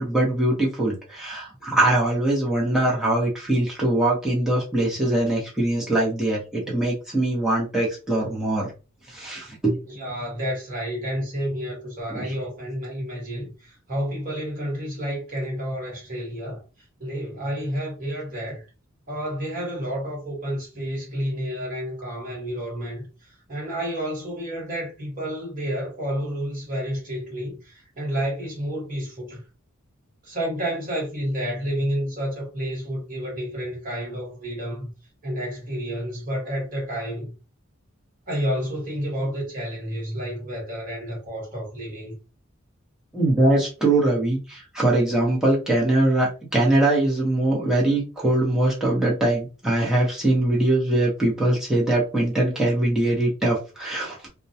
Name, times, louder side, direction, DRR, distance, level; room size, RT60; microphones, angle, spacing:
voice 1, 0.0-8.7 9.1-9.8 12.1-12.3 43.1-54.3, right 1 dB, 5° right, 0.8 m, -22 dB
voice 2, 9.9-16.6 17.0-18.6 19.1-29.4 30.2-34.9 35.2-37.3 38.3-42.2, equal, 40° right, 1.2 m, -30 dB
2.2 x 2.1 x 2.6 m
head